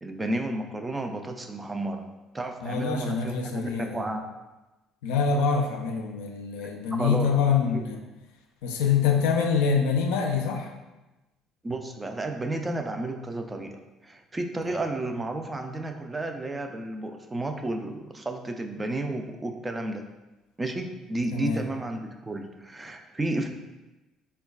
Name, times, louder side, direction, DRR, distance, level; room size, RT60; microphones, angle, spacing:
voice 1, 0.0-4.2 7.0-7.8 11.6-20.1 20.6-23.5, right 2 dB, 20° right, 4 dB, 0.4 m, -32 dB
voice 2, 2.6-4.0 5.0-8.0 8.6-10.7 14.6-14.7 21.3-21.6, left 6 dB, 85° left, 2 dB, 0.3 m, -25 dB
3.8 x 2.2 x 2.3 m, 1.1 s
supercardioid pair, 70°, 0 cm